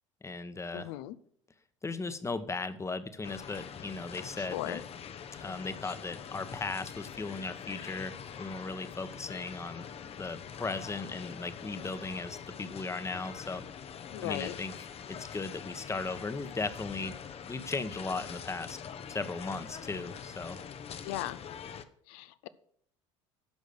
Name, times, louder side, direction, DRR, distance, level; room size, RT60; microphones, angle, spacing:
voice 1, 0.2-0.9 1.8-4.8 5.4-13.6 14.2-17.2 17.4-18.8 19.1-20.6, left 3 dB, 15° left, 11 dB, 1.1 m, -37 dB
voice 2, 0.7-1.2 4.4-4.8 14.1-14.6 21.0-21.4 22.1-22.5, left 15 dB, 65° left, 16 dB, 0.7 m, -37 dB
sound 1, 3.2-21.8, left 8 dB, 40° left, 0.9 m, -44 dB
10.5 x 6.4 x 6.6 m, 0.66 s
hypercardioid pair, 70°, 16 cm